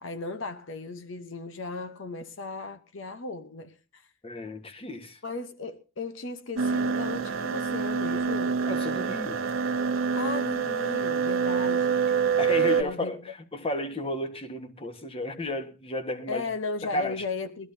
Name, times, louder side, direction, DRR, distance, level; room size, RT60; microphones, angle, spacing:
voice 1, 0.0-4.1 5.2-8.6 10.1-12.0 12.7-13.2 16.3-17.7, left 3 dB, 65° left, 0.8 m, -36 dB
voice 2, 4.2-5.2 8.7-9.4 12.4-16.5 16.9-17.2, left 2 dB, 30° left, 1.3 m, -33 dB
sound 1, 6.6-12.8, right 6 dB, 85° right, 0.9 m, -26 dB
20.5 x 13.0 x 2.7 m
head